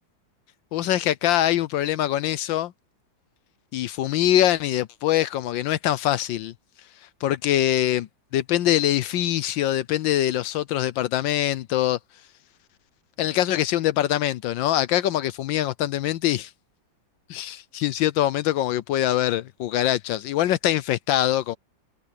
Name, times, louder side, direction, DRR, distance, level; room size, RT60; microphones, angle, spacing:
voice 1, 0.7-2.7 3.7-6.5 7.2-8.1 8.3-12.0 13.2-16.5 17.3-21.6, left 13 dB, 80° left, 1.4 m, -23 dB
omnidirectional pair, 2.1 m